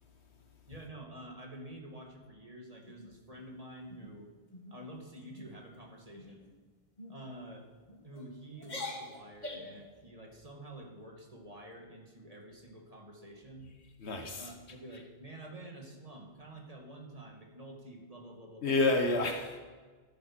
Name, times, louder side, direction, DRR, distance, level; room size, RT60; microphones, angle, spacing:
voice 1, 0.7-4.3 4.7-6.5 7.1-7.7 8.0-13.7 14.4-18.9, right 1 dB, 35° right, 2.2 m, -49 dB
sound 1, 2.8-3.5 3.9-4.1 4.5-4.8 5.2-5.5 6.1-6.5 7.0-7.2 7.9-8.2 8.6-9.8, left 2 dB, 40° left, 2.1 m, -44 dB
voice 2, 14.0-14.4 18.6-19.6, left 2 dB, 70° left, 1.4 m, -29 dB
13.0 x 10.0 x 6.2 m
omnidirectional pair, 1.1 m